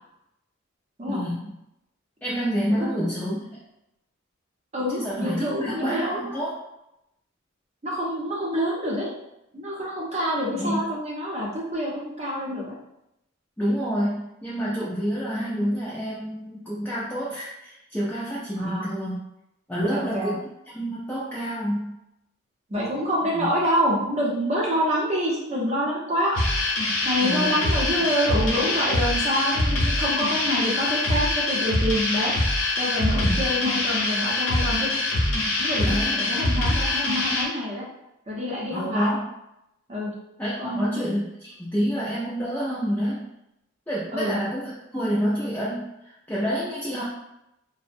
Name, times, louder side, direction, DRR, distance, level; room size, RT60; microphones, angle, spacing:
voice 1, 1.1-1.5 2.2-3.4 4.9-6.5 10.5-10.8 13.6-19.2 19.7-20.4 20.7-21.9 23.3-23.5 27.2-27.6 33.2-33.4 35.8-36.3 38.7-39.3 40.4-41.3 41.6-43.3 43.9-47.0, equal, 10° left, -9 dB, 0.4 m, -28 dB
voice 2, 2.8-3.1 4.7-6.3 7.8-9.1 9.5-12.7 18.6-18.9 19.9-20.3 22.7-26.4 27.0-32.3 32.7-34.9 35.6-37.9 38.3-39.1 39.9-40.1 40.6-41.1 44.1-44.3, equal, 35° right, -4 dB, 0.6 m, -27 dB
sound 1, 26.3-37.4, left 2 dB, 75° left, 0.7 m, -24 dB
2.5 x 2.0 x 2.5 m, 0.85 s
head